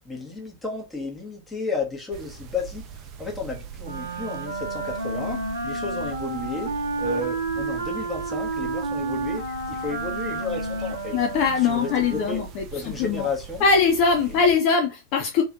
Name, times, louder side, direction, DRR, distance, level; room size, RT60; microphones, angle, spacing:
voice 1, 0.0-2.8 3.2-11.1 11.7-12.4 12.7-13.6, left 3 dB, 10° left, 1.4 m, -32 dB
sound 1, 2.1-14.6, right 6 dB, 35° right, 0.6 m, -42 dB
Wind instrument woodwind instrument, 3.8-12.5, right 3 dB, 80° right, 0.7 m, -30 dB
voice 2, 11.1-13.3 13.6-15.4, left 5 dB, 45° left, 0.5 m, -22 dB
3.1 x 3.0 x 2.5 m
figure-of-eight pair, 90°, 0 cm